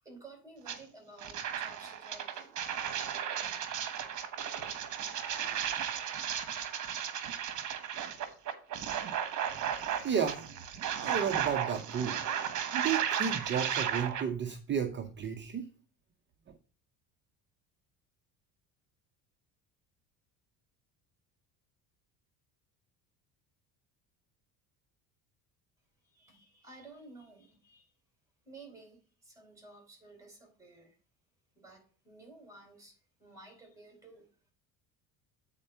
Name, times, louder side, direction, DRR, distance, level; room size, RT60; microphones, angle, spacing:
voice 1, 0.0-2.6 26.0-27.8 28.4-31.0 31.5-34.3, right 2 dB, 10° right, 2 dB, 4.4 m, -54 dB
sound 1, 0.7-0.8 1.2-14.2, right 9 dB, 50° right, 1.3 m, -35 dB
voice 2, 10.0-10.5 11.0-12.2 12.7-15.6, right 7 dB, 30° right, 6 dB, 0.7 m, -32 dB
8.5 x 4.4 x 5.5 m, 0.40 s
cardioid pair, 125°, 38 cm